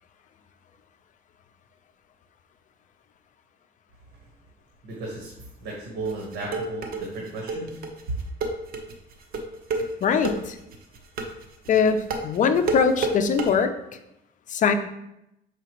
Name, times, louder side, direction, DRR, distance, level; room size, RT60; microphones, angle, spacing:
voice 1, 4.8-7.8 8.1-8.2, right 2 dB, 80° right, -2 dB, 1.3 m, -34 dB
sound 1, 6.0-13.5, right 3 dB, 60° right, 0.9 m, -29 dB
voice 2, 10.0-10.6 11.7-13.7 14.5-14.7, left 6 dB, 50° left, 9 dB, 0.6 m, -21 dB
6.8 x 5.0 x 3.0 m, 0.83 s
cardioid pair, 110°, 17 cm